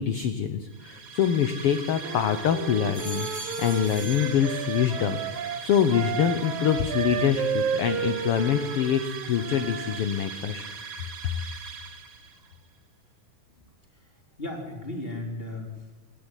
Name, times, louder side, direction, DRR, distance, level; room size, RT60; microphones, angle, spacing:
voice 1, 0.0-3.3 3.6-10.7, left 9 dB, 70° left, 9 dB, 1.4 m, -25 dB
sound 1, 0.7-12.5, right 5 dB, 45° right, 1.8 m, -41 dB
sound 2, 1.1-2.3 2.7-5.1 5.5-6.1, right 2 dB, 10° right, 3.1 m, -43 dB
Wind instrument woodwind instrument, 2.0-10.0, right 8 dB, 65° right, 2.4 m, -32 dB
voice 2, 13.9-16.0, left 1 dB, 15° left, 0 dB, 3.6 m, -36 dB
27.5 x 10.5 x 9.9 m, 1.2 s
omnidirectional pair, 3.9 m